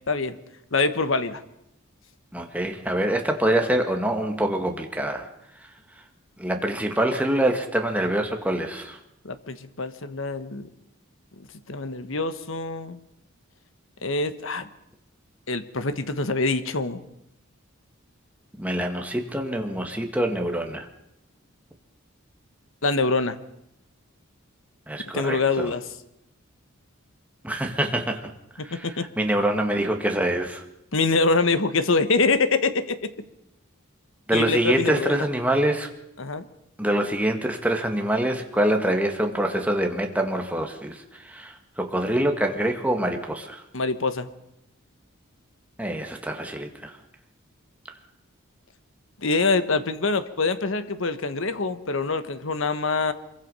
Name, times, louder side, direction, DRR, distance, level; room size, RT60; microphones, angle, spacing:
voice 1, 0.1-0.4 0.7-1.4 9.2-10.7 11.7-13.0 14.0-14.7 15.5-17.1 22.8-23.4 25.1-25.8 28.6-29.1 30.9-33.1 34.3-35.3 36.2-36.5 43.7-44.3 49.2-53.1, left 3 dB, 65° left, 11 dB, 1.3 m, -25 dB
voice 2, 2.3-5.3 6.4-9.0 18.6-20.9 24.9-25.7 27.4-28.3 28.6-30.6 34.3-35.9 36.8-43.6 45.8-46.9, right 1 dB, 5° right, 3 dB, 1.9 m, -25 dB
25.0 x 22.5 x 5.6 m, 0.83 s
head